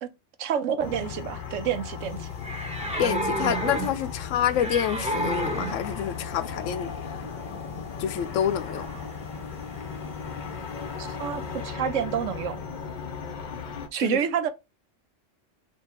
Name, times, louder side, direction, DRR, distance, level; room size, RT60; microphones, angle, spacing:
voice 1, 0.4-2.3 11.0-12.6 13.9-14.5, right 8 dB, 85° right, 1.0 m, -28 dB
sound 1, 0.8-13.9, left 6 dB, 50° left, 0.7 m, -36 dB
sound 2, 2.0-11.6, right 1 dB, 5° right, 0.8 m, -35 dB
voice 2, 3.0-6.9 8.0-8.9 14.0-14.2, left 9 dB, 85° left, 0.9 m, -27 dB
3.4 x 2.8 x 4.3 m
omnidirectional pair, 1.3 m